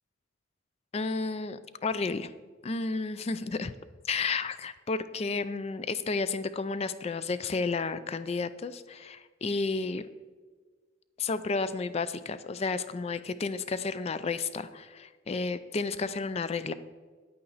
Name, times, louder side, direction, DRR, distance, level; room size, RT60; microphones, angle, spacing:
voice 1, 0.9-2.3 2.6-3.7 4.0-10.0 11.2-16.7, left 4 dB, 30° left, 13 dB, 0.3 m, -32 dB
9.3 x 8.6 x 4.0 m, 1.5 s
head